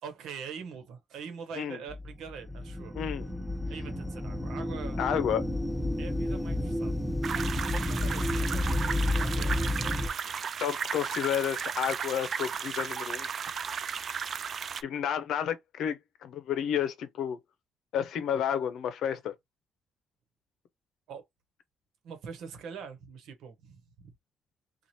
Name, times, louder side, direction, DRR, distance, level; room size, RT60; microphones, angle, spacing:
voice 1, 0.0-3.0 3.7-5.0 6.0-6.9 7.4-10.3 13.5-13.6 21.1-21.2 22.0-24.1, right 6 dB, 80° right, 1.1 m, -44 dB
sound 1, 1.9-10.1, left 1 dB, 5° left, 0.7 m, -31 dB
voice 2, 2.9-3.3 5.0-5.4 10.6-13.3 14.8-17.4 17.9-19.3, left 9 dB, 75° left, 0.7 m, -31 dB
sound 2, 7.2-14.8, right 6 dB, 50° right, 0.3 m, -35 dB
3.1 x 2.4 x 4.1 m
cardioid pair, 90°, 0 cm